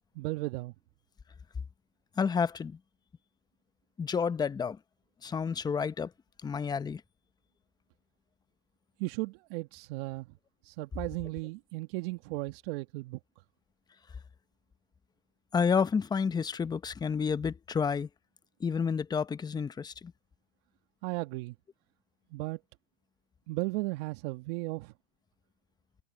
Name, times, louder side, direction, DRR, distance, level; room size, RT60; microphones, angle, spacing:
voice 1, 0.2-0.7 9.0-10.3 10.6-13.2 21.0-21.5 22.3-22.6 23.5-24.9, right 22 dB, 45° right, 1.7 m, -35 dB
voice 2, 2.2-2.8 4.0-4.8 5.2-6.1 6.4-7.0 15.5-18.1 18.6-20.1, left 6 dB, 10° left, 0.9 m, -30 dB
hypercardioid pair, 125°, 40 cm